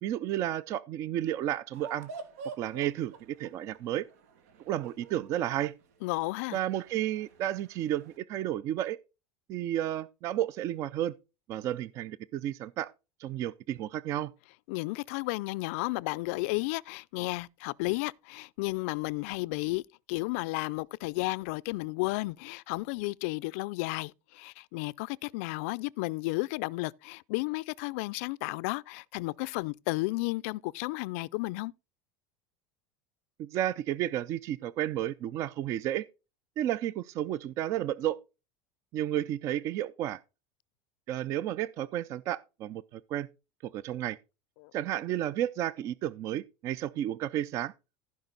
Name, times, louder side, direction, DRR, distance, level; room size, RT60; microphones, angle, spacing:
voice 1, 0.0-2.1 2.6-4.0 4.7-5.7 6.5-9.0 9.5-11.1 11.5-12.9 13.2-14.3 33.4-36.1 36.6-38.2 38.9-40.2 41.1-43.3 43.7-44.2 44.7-47.7, right 12 dB, 40° right, 0.4 m, -32 dB
sound 1, 1.7-8.2, right 4 dB, 90° right, 2.1 m, -48 dB
voice 2, 6.0-6.6 14.7-19.8 20.1-31.7 44.6-44.7, left 23 dB, 65° left, 0.4 m, -33 dB
15.0 x 5.2 x 3.9 m
supercardioid pair, 155°, 8 cm